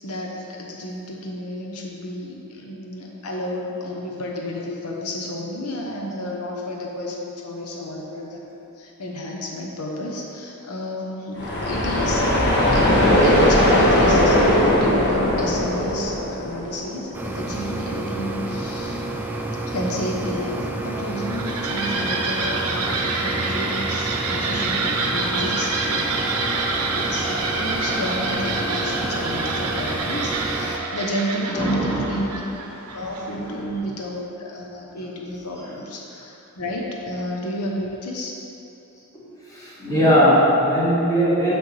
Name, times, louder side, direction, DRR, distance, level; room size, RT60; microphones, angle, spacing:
voice 1, 0.0-8.4 8.8-12.2 12.7-19.0 19.7-26.3 26.9-32.4 32.9-38.4, left 1 dB, 80° left, -1 dB, 0.8 m, -31 dB
sound 1, 11.4-17.1, left 1 dB, 50° left, 1.3 m, -19 dB
sound 2, 17.1-30.8, right 1 dB, 10° right, 0.4 m, -30 dB
sound 3, 21.0-33.5, right 3 dB, 85° right, 0.7 m, -27 dB
voice 2, 31.5-32.1 33.3-33.7 39.1-41.5, equal, 15° left, -7 dB, 1.4 m, -20 dB
7.0 x 6.0 x 3.2 m, 2.9 s
head